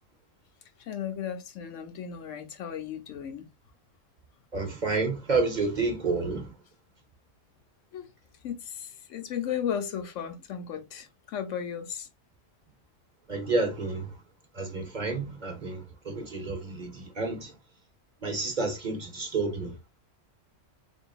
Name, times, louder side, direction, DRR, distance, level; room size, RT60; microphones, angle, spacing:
voice 1, 0.8-3.5 7.9-8.1 8.4-12.1, left 8 dB, 75° left, 1.0 m, -35 dB
voice 2, 4.5-6.6 13.3-14.1 14.5-17.6 18.2-19.8, right 3 dB, 40° right, 0.8 m, -30 dB
3.9 x 3.6 x 2.4 m
omnidirectional pair, 1.3 m